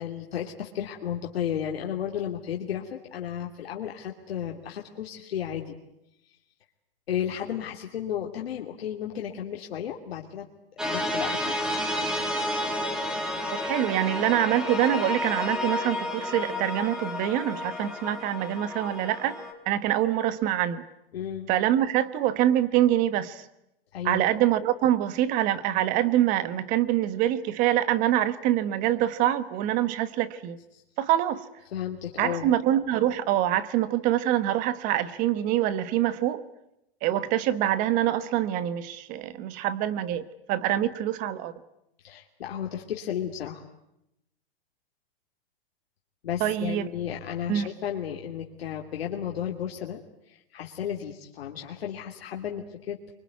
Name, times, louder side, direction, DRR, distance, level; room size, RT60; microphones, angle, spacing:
voice 1, 0.0-5.8 7.1-10.5 10.9-12.5 21.1-21.5 23.9-24.2 30.7-30.8 31.7-32.5 42.0-43.6 46.2-53.0, left 9 dB, 85° left, 2.8 m, -33 dB
sound 1, 10.8-19.5, left 1 dB, ahead, 2.4 m, -31 dB
voice 2, 13.5-19.4 19.6-20.8 21.5-23.4 24.0-30.6 31.0-31.4 32.2-36.4 37.0-41.5 46.4-46.9 47.5-47.7, right 12 dB, 25° right, 1.2 m, -25 dB
26.0 x 24.0 x 9.5 m
supercardioid pair, 165°, 30 cm